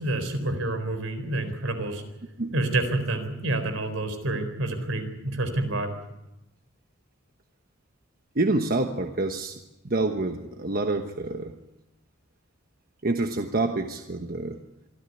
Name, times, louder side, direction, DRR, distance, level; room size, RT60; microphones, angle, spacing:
voice 1, 0.0-2.0 2.5-5.9, right 2 dB, 75° right, 8 dB, 4.2 m, -28 dB
voice 2, 8.3-9.6 9.8-11.5 13.0-14.6, right 2 dB, 45° right, 5 dB, 1.2 m, -27 dB
25.5 x 13.5 x 9.7 m, 0.97 s
head